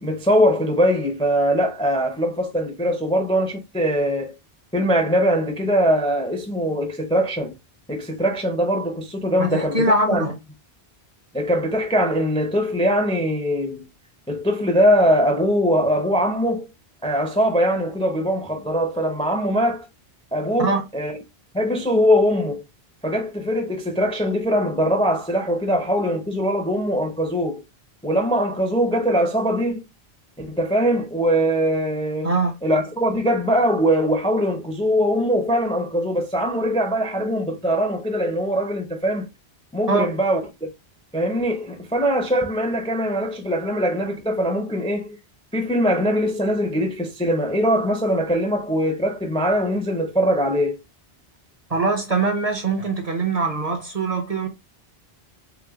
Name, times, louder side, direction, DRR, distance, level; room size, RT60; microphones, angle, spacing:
voice 1, 0.0-4.3 4.7-7.5 7.9-10.2 11.3-13.9 14.3-16.7 17.0-19.9 20.3-21.2 21.5-22.6 23.0-27.6 28.0-29.8 30.4-32.3 32.6-39.3 39.7-40.4 41.1-45.2 45.5-50.8, equal, 10° left, 0.4 m, -21 dB
voice 2, 9.4-10.3 20.6-20.8 32.2-32.5 39.9-40.1 51.7-54.5, right 3 dB, 45° right, 0.6 m, -22 dB
3.4 x 3.0 x 2.3 m
omnidirectional pair, 1.1 m